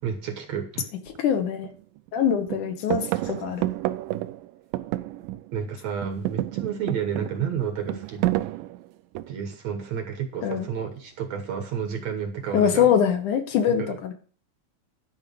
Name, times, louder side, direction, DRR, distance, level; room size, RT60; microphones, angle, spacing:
voice 1, 0.0-0.9 5.5-8.3 9.3-12.9 13.7-14.0, right 7 dB, 65° right, 6 dB, 2.1 m, -31 dB
sound 1, 1.1-1.2 1.6-2.2 2.5-5.6 5.9-9.5 10.5-11.0, right 16 dB, 85° right, 2.3 m, -30 dB
voice 2, 1.2-1.7 2.1-3.6 10.4-10.7 12.5-14.1, left 8 dB, 70° left, 6 dB, 2.4 m, -23 dB
11.0 x 4.7 x 7.7 m, 0.42 s
omnidirectional pair, 3.9 m